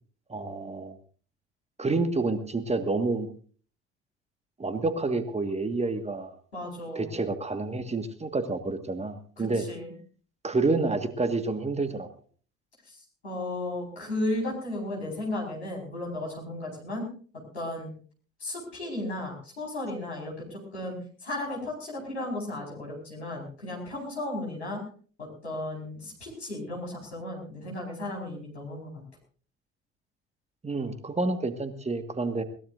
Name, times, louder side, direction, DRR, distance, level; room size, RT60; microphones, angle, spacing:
voice 1, 0.3-1.0 1.8-3.3 4.6-6.4 7.0-9.7 10.4-12.1 30.6-32.4, right 3 dB, 20° right, 9 dB, 1.7 m, -28 dB
voice 2, 6.5-7.2 9.4-9.9 12.9-13.0 13.2-17.1 17.5-17.9 18.4-20.9 21.2-24.8 25.2-29.0, left 1 dB, 85° left, -2 dB, 4.9 m, -34 dB
21.0 x 18.5 x 2.6 m, 0.43 s
figure-of-eight pair, 50°, 32 cm